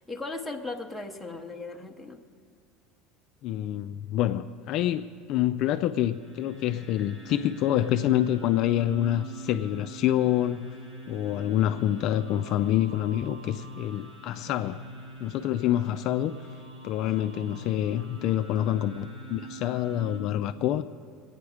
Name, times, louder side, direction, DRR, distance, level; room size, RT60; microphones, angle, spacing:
voice 1, 0.0-2.2, left 3 dB, ahead, 6 dB, 0.7 m, -37 dB
voice 2, 3.4-10.7 11.1-14.8 15.2-16.4 16.8-20.8, left 12 dB, 40° left, 9 dB, 0.3 m, -27 dB
sound 1, 5.9-20.2, right 1 dB, 70° right, 4.5 m, -44 dB
23.5 x 9.5 x 4.9 m, 2.3 s
cardioid pair, 180°, 0 cm